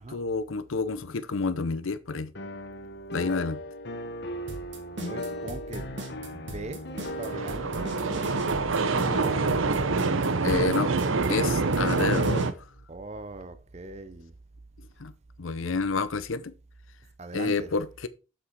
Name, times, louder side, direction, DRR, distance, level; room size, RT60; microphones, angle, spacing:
voice 1, 0.1-2.3 3.1-3.6 10.4-10.9 11.3-12.5 15.0-15.1 15.4-16.5 17.3-18.1, left 4 dB, 80° left, 0.7 m, -29 dB
sound 1, 2.4-12.3, equal, 55° left, 1.0 m, -38 dB
Happy drum loop, 4.5-12.5, right 2 dB, 60° right, 1.8 m, -38 dB
voice 2, 5.0-6.0 6.3-7.7 12.9-14.3 17.2-17.7, right 2 dB, 35° right, 0.7 m, -40 dB
sound 2, 7.1-12.5, right 3 dB, 80° right, 0.8 m, -26 dB
7.2 x 7.0 x 4.5 m
head